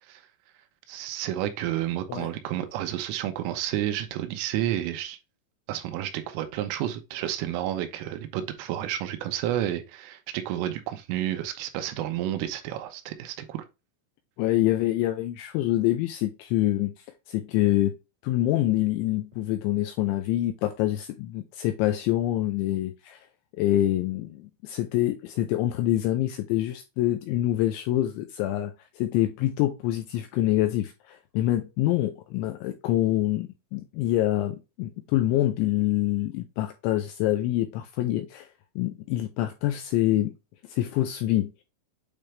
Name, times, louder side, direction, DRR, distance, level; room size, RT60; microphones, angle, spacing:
voice 1, 0.9-5.2 5.7-13.7, right 12 dB, 80° right, 3.4 m, -30 dB
voice 2, 14.4-16.9 17.3-17.9 18.2-23.3 23.6-38.5 38.8-40.3 40.7-41.5, left 14 dB, 85° left, 2.7 m, -26 dB
8.8 x 3.3 x 3.3 m
omnidirectional pair, 5.9 m